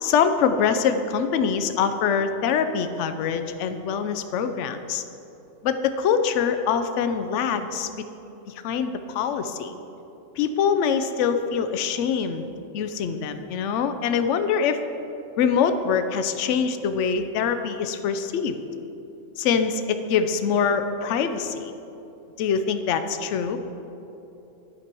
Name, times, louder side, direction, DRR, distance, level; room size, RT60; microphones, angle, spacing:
voice 1, 0.0-5.0 5.6-8.0 8.5-9.7 10.4-12.5 12.7-14.8 15.4-18.6 19.4-21.7 22.4-23.6, left 6 dB, 70° left, 9 dB, 0.9 m, -24 dB
11.0 x 4.5 x 6.0 m, 2.9 s
omnidirectional pair, 1.4 m